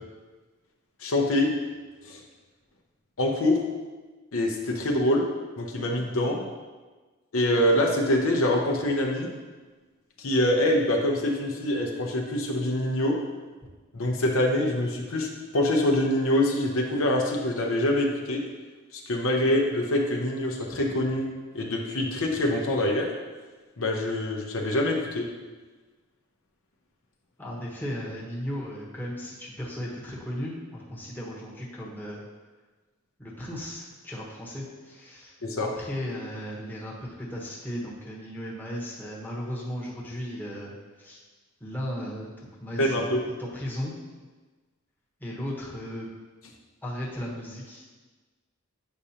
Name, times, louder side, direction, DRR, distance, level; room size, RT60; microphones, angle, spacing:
voice 1, 1.0-1.5 2.0-2.2 3.2-3.6 4.3-5.2 5.6-6.4 7.3-9.3 10.2-13.2 13.9-18.4 18.9-21.3 21.5-23.1 23.8-25.3 35.4-35.7 42.8-43.2, left 1 dB, 75° left, 0 dB, 0.8 m, -25 dB
voice 2, 27.4-32.2 33.2-35.3 35.6-41.2 41.6-43.9 45.2-46.1 46.8-47.9, equal, 10° left, -5 dB, 1.0 m, -36 dB
8.0 x 4.9 x 2.8 m, 1.3 s
head